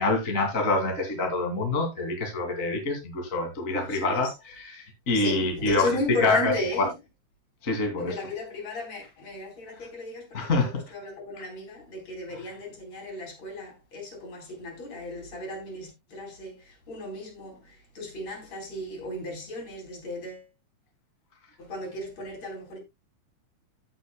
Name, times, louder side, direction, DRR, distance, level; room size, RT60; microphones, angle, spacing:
voice 1, 0.0-5.9 6.2-6.9 7.6-8.2 10.3-10.8, left 2 dB, 25° left, 2.5 m, -26 dB
voice 2, 3.8-4.3 5.1-7.0 8.0-10.5 10.9-20.5 21.6-22.8, left 2 dB, 55° left, 5.2 m, -35 dB
16.0 x 7.1 x 2.2 m
omnidirectional pair, 3.6 m